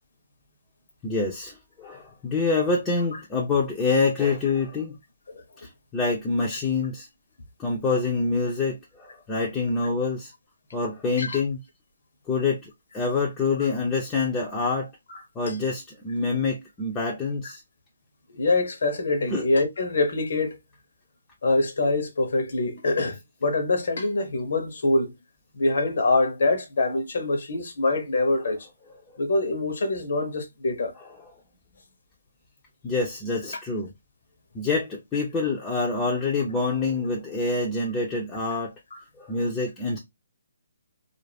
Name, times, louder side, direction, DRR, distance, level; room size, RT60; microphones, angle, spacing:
voice 1, 1.0-5.0 5.9-7.1 7.6-10.3 10.7-11.6 12.3-14.9 15.4-17.6 19.3-19.4 32.8-33.9 34.5-38.7 39.2-40.0, left 3 dB, 15° left, 0.6 m, -26 dB
voice 2, 18.3-20.6 21.4-25.2 25.5-28.7 29.2-30.9 38.9-39.0, left 2 dB, 65° left, 0.9 m, -25 dB
2.5 x 2.0 x 3.3 m
hypercardioid pair, 155°, 0 cm